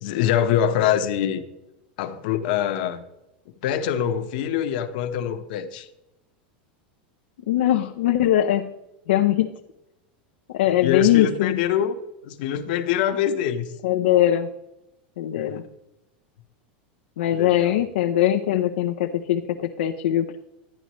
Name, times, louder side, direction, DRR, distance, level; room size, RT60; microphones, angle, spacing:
voice 1, 0.0-1.4 2.0-3.0 3.6-5.9 10.8-12.0 12.2-13.7 15.3-15.6 17.3-17.7, left 9 dB, 65° left, 7 dB, 1.1 m, -24 dB
voice 2, 7.5-8.7 9.1-9.5 10.5-11.6 13.8-14.5 15.2-15.6 17.2-20.4, left 12 dB, 85° left, 4 dB, 0.8 m, -21 dB
12.0 x 10.0 x 3.1 m, 0.90 s
supercardioid pair, 140°, 5 cm